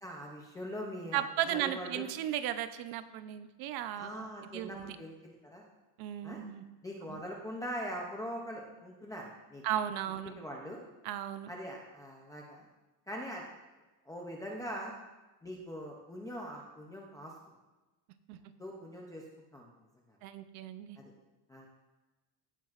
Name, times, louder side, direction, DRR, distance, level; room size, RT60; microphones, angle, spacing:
voice 1, 0.0-2.0 4.0-5.6 6.2-6.4 6.8-9.2 9.5-9.6 10.2-10.8 11.5-12.7 13.1-13.5 14.1-14.9 15.4-17.3 18.6-19.2 19.5-19.7 20.1-20.2 21.0-21.1 21.5-21.7, equal, 10° left, -3 dB, 0.4 m, -42 dB
voice 2, 1.1-5.0 6.0-6.6 7.1-7.2 9.6-10.3 11.0-11.5 18.3-18.4 20.2-21.0, right 11 dB, 50° right, 11 dB, 0.6 m, -36 dB
16.0 x 8.8 x 2.4 m, 1.1 s
cardioid pair, 180°, 50 cm